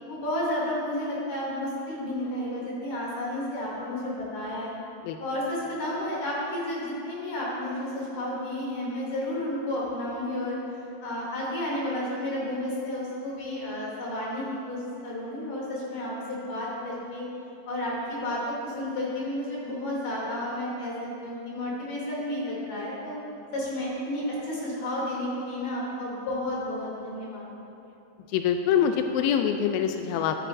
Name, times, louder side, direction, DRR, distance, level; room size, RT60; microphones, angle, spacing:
voice 1, 0.1-4.7 5.2-10.6 11.0-17.3 17.7-20.9 21.2-23.1 23.5-27.5, left 1 dB, 55° left, -6 dB, 4.3 m, -31 dB
voice 2, 28.3-30.4, left 8 dB, 85° left, 6 dB, 2.2 m, -24 dB
15.0 x 12.5 x 2.6 m, 2.8 s
omnidirectional pair, 4.8 m